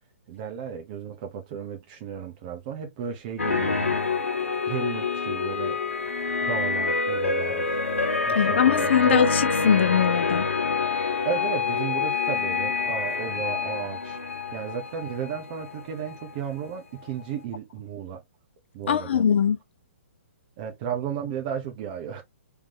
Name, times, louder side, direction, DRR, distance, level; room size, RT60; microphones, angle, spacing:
voice 1, 0.3-4.0 4.6-5.8 6.4-7.7 8.3-9.3 11.2-14.2 14.5-18.2 18.7-19.2 20.6-22.2, right 8 dB, 35° right, 1.1 m, -34 dB
sound 1, 3.4-16.7 17.0-17.2, left 4 dB, 80° left, 1.0 m, -27 dB
voice 2, 8.3-10.4 18.9-19.6, left 8 dB, 60° left, 0.8 m, -21 dB
3.5 x 3.4 x 3.0 m
figure-of-eight pair, 130°, 7 cm